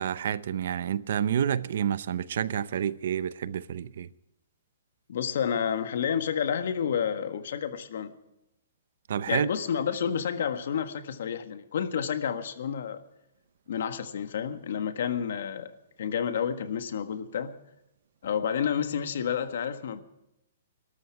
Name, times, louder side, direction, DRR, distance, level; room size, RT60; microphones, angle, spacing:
voice 1, 0.0-4.1 9.1-9.5, right 9 dB, 50° right, 0.7 m, -29 dB
voice 2, 5.1-8.1 9.3-13.0 13.7-15.7 16.0-17.5 18.2-20.0, left 8 dB, 55° left, 1.6 m, -30 dB
21.0 x 13.5 x 4.7 m
hypercardioid pair, 175°, 0 cm